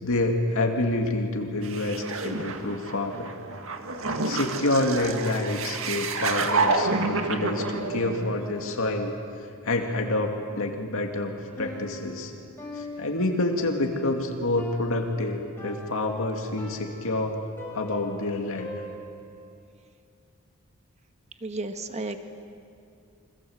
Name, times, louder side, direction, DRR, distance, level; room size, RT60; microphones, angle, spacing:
voice 1, 0.0-3.3 4.2-9.1 9.6-12.3 12.7-17.4 17.7-18.7, left 2 dB, 65° left, 3 dB, 2.5 m, -27 dB
sound 1, 1.6-8.7, right 3 dB, 65° right, 2.0 m, -29 dB
Piano, 11.6-19.4, left 1 dB, 10° left, 6.7 m, -42 dB
voice 2, 21.4-22.2, right 2 dB, 30° right, 7 dB, 1.5 m, -32 dB
29.0 x 25.5 x 8.1 m, 2.5 s
head